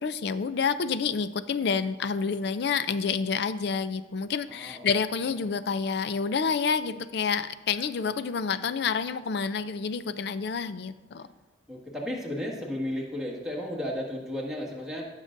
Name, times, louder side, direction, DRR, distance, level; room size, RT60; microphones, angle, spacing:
voice 1, 0.0-11.3, left 5 dB, 60° left, 14 dB, 0.4 m, -28 dB
voice 2, 4.5-4.9 5.3-5.4 11.7-15.0, left 1 dB, 5° right, -4 dB, 1.7 m, -34 dB
15.0 x 6.5 x 2.6 m, 1.3 s
head